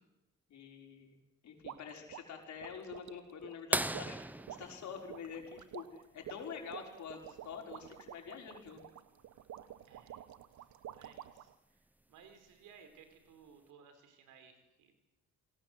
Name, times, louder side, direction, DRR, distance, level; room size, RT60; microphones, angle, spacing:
voice 1, 0.5-1.2 1.4-4.2 4.6-8.8, left 7 dB, 70° left, 2 dB, 5.7 m, -47 dB
sound 1, 1.6-11.5, right 11 dB, 70° right, 1.2 m, -50 dB
sound 2, 3.7-6.2 8.1-8.2 10.4-10.5 12.2-12.5 13.3-13.4, right 1 dB, 5° right, 0.8 m, -37 dB
voice 2, 9.9-14.9, right 6 dB, 90° right, 7 dB, 4.6 m, -60 dB
27.5 x 19.0 x 8.0 m, 0.99 s
cardioid pair, 90°, 30 cm